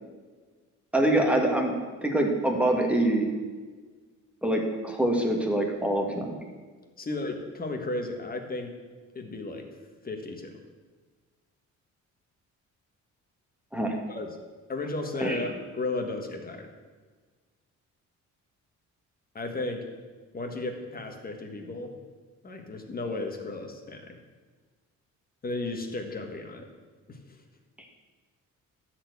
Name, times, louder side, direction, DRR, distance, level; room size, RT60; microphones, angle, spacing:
voice 1, 0.9-1.7 2.0-3.3 4.4-6.4 13.7-14.0 15.2-15.4, right 1 dB, 5° right, 2 dB, 1.7 m, -25 dB
voice 2, 7.0-8.7 9.2-9.7 10.0-10.5 14.1-14.3 14.7-16.7 19.4-19.9 20.3-21.9 22.4-24.2 25.4-26.7 27.1-27.4, left 2 dB, 30° left, 4 dB, 1.6 m, -34 dB
13.0 x 4.6 x 8.3 m, 1.4 s
cardioid pair, 120°, 31 cm